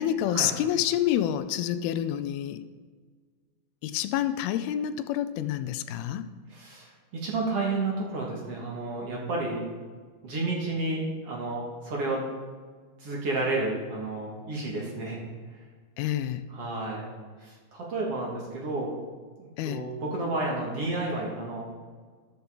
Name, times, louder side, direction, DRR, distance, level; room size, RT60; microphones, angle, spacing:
voice 1, 0.0-2.6 3.8-6.3 16.0-16.5 19.6-19.8, left 11 dB, 85° left, 12 dB, 2.5 m, -28 dB
voice 2, 6.5-6.9 7.2-9.6 10.2-12.2 13.0-15.2 15.5-15.6 16.5-17.1 17.4-18.9 19.4-21.6, right 2 dB, 45° right, -2 dB, 2.5 m, -31 dB
12.5 x 11.5 x 3.9 m, 1.5 s
omnidirectional pair, 4.4 m